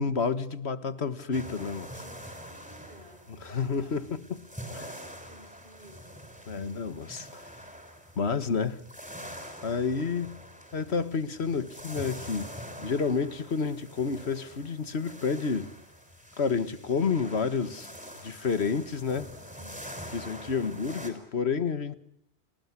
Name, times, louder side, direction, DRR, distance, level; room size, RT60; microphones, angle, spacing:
voice 1, 0.0-1.9 3.4-4.5 4.7-4.9 6.5-7.5 8.2-8.8 9.2-9.3 9.6-10.4 10.7-12.5 12.8-15.7 16.4-17.9 18.2-19.3 20.1-21.9, left 5 dB, 80° left, 1.8 m, -30 dB
sound 1, 1.3-21.1, equal, 5° right, 6.2 m, -45 dB
voice 2, 1.9-4.1 4.4-6.3 19.5-19.8, right 1 dB, 60° right, 6.8 m, -54 dB
30.0 x 19.5 x 9.8 m
omnidirectional pair, 1.1 m